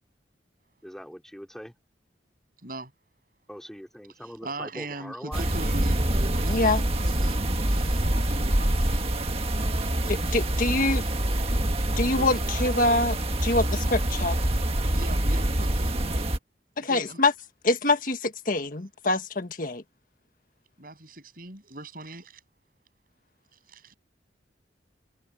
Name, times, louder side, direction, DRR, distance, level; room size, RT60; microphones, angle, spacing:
voice 1, 0.8-1.7 3.5-5.5, equal, 5° left, 3.2 m, -42 dB
voice 2, 4.2-11.4 11.8-12.4 14.9-16.4 16.9-17.2 20.8-22.4 23.7-23.9, right 2 dB, 50° right, 8.0 m, -42 dB
sound 1, 5.3-16.4, right 1 dB, 35° right, 1.6 m, -26 dB
voice 3, 6.5-6.8 10.1-11.0 12.0-13.2 13.4-14.4 16.8-17.3 17.6-19.8, left 2 dB, 50° left, 1.7 m, -25 dB
head